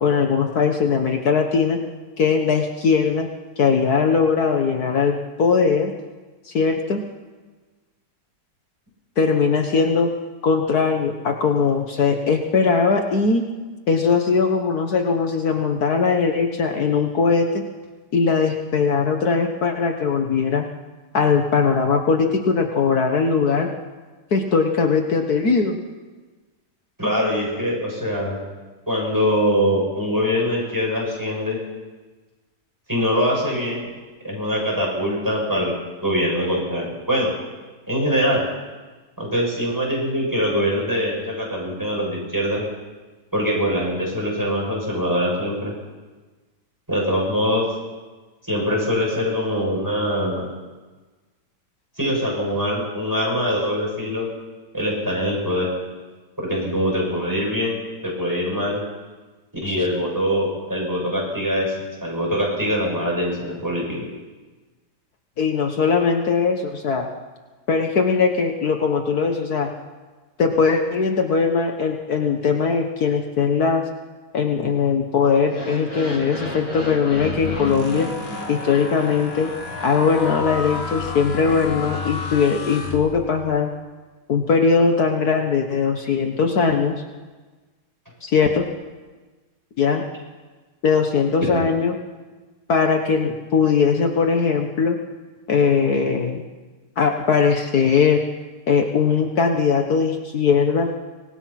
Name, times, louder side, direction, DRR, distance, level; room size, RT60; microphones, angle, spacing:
voice 1, 0.0-1.8 2.2-3.3 3.6-5.9 6.5-7.0 9.2-10.1 10.4-13.4 13.9-17.6 18.1-20.7 21.1-23.7 24.3-25.8 65.4-67.1 67.7-69.7 70.4-73.8 74.3-78.1 78.5-79.5 79.8-83.7 84.3-87.0 88.2-88.7 89.8-90.0 90.8-92.0 92.7-95.0 95.5-96.4 97.0-98.2 98.7-100.9, left 5 dB, 65° left, 4 dB, 1.8 m, -20 dB
voice 2, 27.0-28.4 28.9-31.6 32.9-33.9 34.2-35.7 36.0-37.3 37.9-38.4 39.2-42.6 43.3-45.7 46.9-47.6 48.5-50.5 52.0-54.3 54.7-55.7 56.4-58.8 59.6-61.7 62.0-64.0 91.4-91.6, equal, 10° right, -3 dB, 7.5 m, -23 dB
sound 1, 75.4-80.6, equal, 85° left, 7.8 m, -34 dB
sound 2, 77.1-83.6, left 4 dB, 35° left, 2.0 m, -31 dB
25.0 x 19.5 x 5.9 m, 1.3 s
omnidirectional pair, 1.8 m